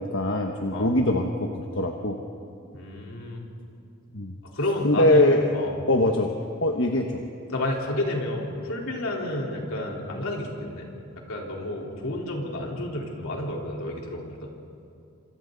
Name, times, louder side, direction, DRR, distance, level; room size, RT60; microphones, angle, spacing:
voice 1, 0.0-2.2 4.1-4.3 4.8-5.4 5.9-7.2, left 1 dB, 70° left, 3 dB, 1.2 m, -23 dB
voice 2, 2.7-3.4 4.5-5.2 5.5-5.8 7.5-10.9 11.3-14.5, left 1 dB, 90° left, -1 dB, 4.0 m, -30 dB
27.5 x 26.5 x 4.0 m, 2.7 s
head